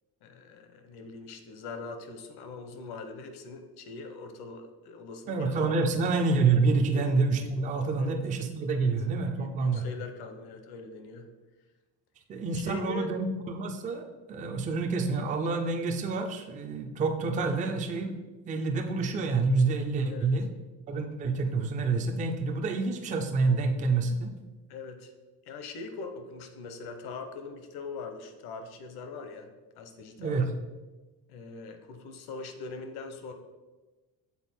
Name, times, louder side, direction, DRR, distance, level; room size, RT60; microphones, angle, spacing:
voice 1, 0.2-6.2 6.9-7.1 8.0-8.2 8.8-8.9 9.4-11.3 12.5-13.1 20.1-20.3 24.7-25.1 25.5-29.5 29.7-30.4 31.3-33.3, left 3 dB, 65° left, 7 dB, 0.9 m, -42 dB
voice 2, 5.3-9.8 12.3-18.1 18.5-20.5 20.9-24.3 30.2-30.5, right 4 dB, 20° right, 4 dB, 0.3 m, -28 dB
6.9 x 4.1 x 4.3 m, 1.2 s
cardioid pair, 175°, 41 cm